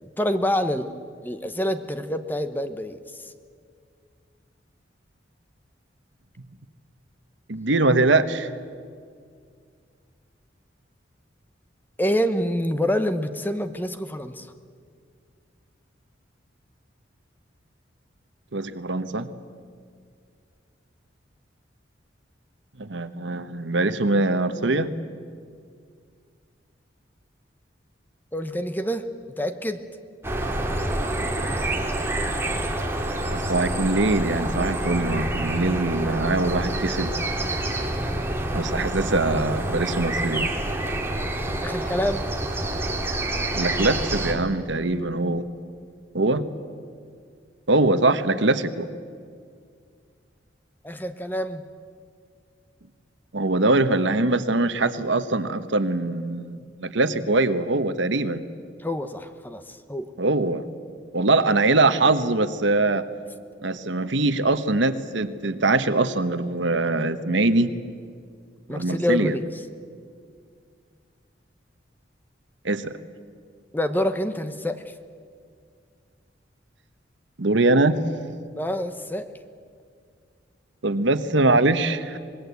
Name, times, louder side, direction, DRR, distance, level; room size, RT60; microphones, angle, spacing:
voice 1, 0.0-0.9 1.2-3.3 12.0-14.5 28.3-29.0 29.4-29.8 41.6-42.3 50.8-51.6 58.8-60.1 68.7-69.5 73.7-74.8 78.6-79.3, left 1 dB, 10° left, 9 dB, 1.0 m, -27 dB
voice 2, 7.5-8.5 18.5-19.3 22.8-24.9 33.3-37.1 38.5-40.5 43.6-45.4 46.1-46.4 47.7-48.9 53.3-58.4 60.2-60.6 61.1-63.1 63.6-67.7 68.7-69.4 72.6-72.9 77.4-78.0 80.8-82.2, right 2 dB, 75° right, 11 dB, 1.2 m, -22 dB
sound 1, 30.2-44.3, right 1 dB, 15° right, 2.5 m, -27 dB
25.5 x 20.5 x 8.3 m, 2.1 s
head